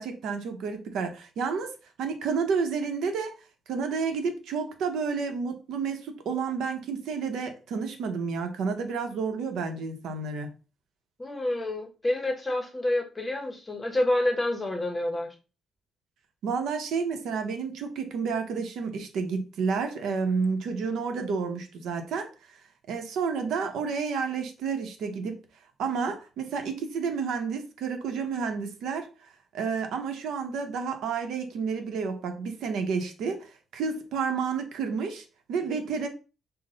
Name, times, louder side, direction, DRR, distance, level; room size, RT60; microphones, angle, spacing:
voice 1, 0.0-1.7 2.0-3.3 3.7-10.5 16.4-22.6 22.9-25.4 25.8-29.1 29.5-36.1, right 5 dB, 80° right, 0.8 m, -30 dB
voice 2, 11.2-15.3, left 1 dB, 15° left, 0.8 m, -28 dB
5.8 x 2.1 x 3.8 m
cardioid pair, 165°, 0 cm